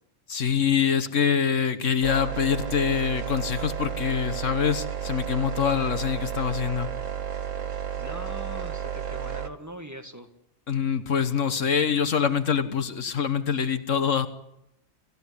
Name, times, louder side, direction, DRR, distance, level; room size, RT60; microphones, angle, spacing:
voice 1, 0.3-6.9 10.7-14.3, left 7 dB, 75° left, 11 dB, 1.7 m, -25 dB
sound 1, 2.0-9.5, right 9 dB, 80° right, 1.8 m, -32 dB
voice 2, 8.0-10.3, equal, 15° right, 5 dB, 1.7 m, -41 dB
26.5 x 15.5 x 9.8 m, 0.82 s
omnidirectional pair, 1.3 m